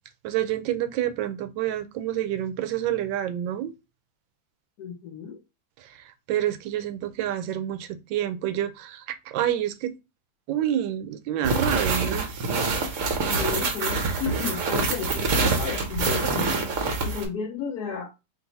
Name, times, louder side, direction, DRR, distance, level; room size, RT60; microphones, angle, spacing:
voice 1, 0.2-3.7 5.8-9.9 10.5-12.5, right 11 dB, 80° right, 1.3 m, -28 dB
voice 2, 4.8-5.4 13.2-16.5 17.0-18.1, left 7 dB, 70° left, 0.9 m, -33 dB
sound 1, 11.4-17.3, right 3 dB, 60° right, 0.8 m, -25 dB
3.9 x 2.5 x 3.9 m
omnidirectional pair, 2.1 m